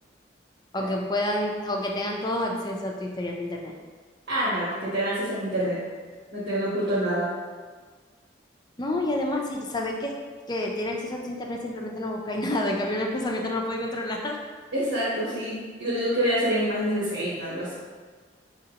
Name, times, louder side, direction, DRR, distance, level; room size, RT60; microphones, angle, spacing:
voice 1, 0.7-3.7 8.8-10.1 10.5-14.4, left 1 dB, 20° left, 1 dB, 0.4 m, -29 dB
voice 2, 4.3-5.8 6.3-7.3 14.7-17.7, equal, 70° right, -10 dB, 1.2 m, -27 dB
5.9 x 2.9 x 2.9 m, 1.5 s
head